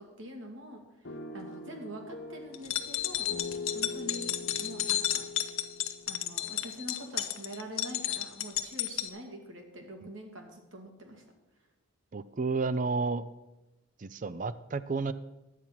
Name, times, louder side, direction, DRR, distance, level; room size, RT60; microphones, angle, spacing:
voice 1, 0.0-3.3 3.7-5.2 6.1-11.2, equal, 70° right, 2 dB, 2.2 m, -45 dB
sound 1, 1.1-7.1, left 3 dB, 60° left, 0.9 m, -43 dB
sound 2, 2.5-9.1, left 12 dB, 85° left, 0.8 m, -32 dB
voice 2, 12.1-13.2 14.0-15.1, right 4 dB, 40° right, 14 dB, 0.5 m, -31 dB
11.0 x 8.5 x 5.9 m, 1.0 s
head